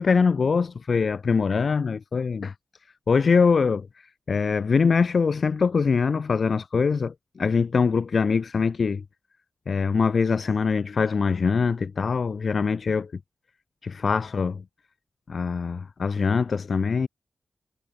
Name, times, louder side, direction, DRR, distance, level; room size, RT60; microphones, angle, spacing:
voice 1, 0.0-2.5 3.1-3.9 4.3-9.0 9.7-13.1 13.8-14.6 15.3-17.1, left 5 dB, 55° left, 0.7 m, -23 dB
wide cardioid pair, 105°, 0 cm